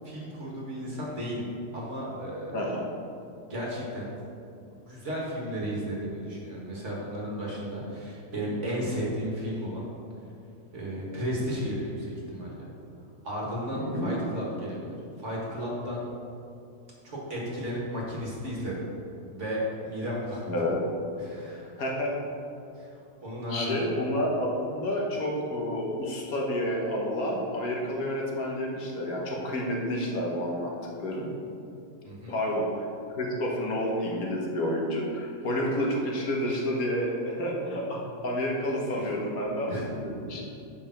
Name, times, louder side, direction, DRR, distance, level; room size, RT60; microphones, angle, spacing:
voice 1, 0.0-2.8 3.5-4.1 4.9-9.9 10.7-12.7 13.2-16.1 17.0-18.8 19.3-20.6 21.2-21.7 22.8-22.9 23.2-24.0 32.0-32.4 38.9-39.1 39.7-39.9, equal, 50° right, -4 dB, 2.0 m, -34 dB
voice 2, 2.5-2.8 13.7-14.1 20.5-20.8 21.8-22.1 23.5-30.7 31.0-31.3 32.3-32.7 33.2-40.4, equal, 65° left, -2 dB, 1.6 m, -29 dB
7.0 x 5.3 x 5.9 m, 2.6 s
omnidirectional pair, 1.7 m